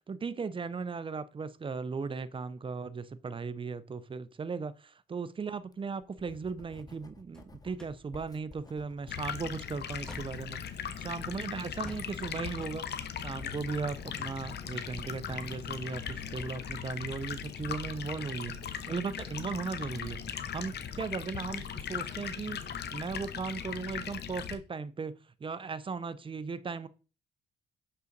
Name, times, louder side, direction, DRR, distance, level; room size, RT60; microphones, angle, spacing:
voice 1, 0.1-10.6 11.0-12.9 13.2-25.1 25.4-26.9, right 5 dB, 25° right, 0.6 m, -37 dB
Writing, 5.6-24.3, left 3 dB, 20° left, 0.6 m, -55 dB
sound 1, 7.3-11.2 11.8-13.8, left 1 dB, 5° left, 1.8 m, -53 dB
Stream, 9.1-24.5, left 8 dB, 55° left, 0.8 m, -39 dB
6.3 x 5.6 x 4.0 m
cardioid pair, 90°, 20 cm